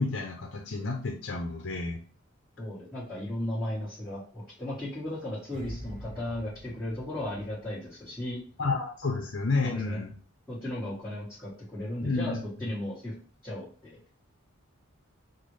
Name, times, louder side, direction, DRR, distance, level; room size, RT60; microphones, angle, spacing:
voice 1, 0.0-2.0 8.6-10.1 12.0-12.4, left 3 dB, 60° left, 3 dB, 0.6 m, -30 dB
voice 2, 2.6-8.4 9.6-10.0 10.5-13.1 13.4-14.0, left 1 dB, ahead, -10 dB, 1.3 m, -35 dB
sound 1, 5.5-8.7 9.0-9.2, equal, 40° right, 0.9 m, -45 dB
5.7 x 2.1 x 3.2 m, 0.41 s
head